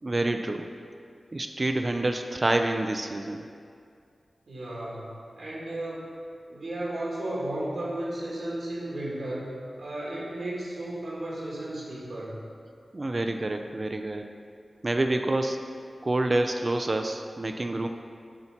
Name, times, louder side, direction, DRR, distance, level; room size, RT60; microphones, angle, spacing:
voice 1, 0.0-0.7 1.3-3.4 12.9-14.3 14.8-15.6 16.0-17.9, right 2 dB, 45° right, 5 dB, 0.4 m, -27 dB
voice 2, 4.5-6.0 6.5-9.5 9.8-12.4, right 1 dB, 85° right, -6 dB, 1.5 m, -34 dB
7.8 x 2.8 x 5.7 m, 2.3 s
cardioid pair, 40°, 0 cm